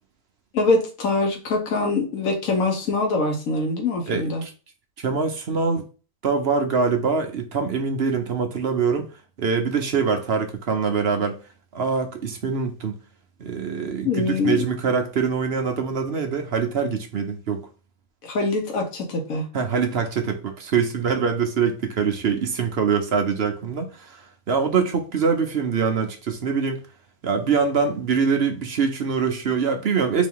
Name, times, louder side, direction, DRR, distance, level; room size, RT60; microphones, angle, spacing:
voice 1, 0.5-4.4 14.0-14.7 18.2-19.4, left 3 dB, 75° left, 1.5 m, -23 dB
voice 2, 4.1-4.5 5.0-5.8 6.2-9.1 9.4-11.4 11.7-12.9 13.4-17.7 19.5-24.2 24.5-26.8 27.2-30.3, right 5 dB, 55° right, 0.9 m, -24 dB
4.0 x 2.7 x 3.6 m
omnidirectional pair, 1.5 m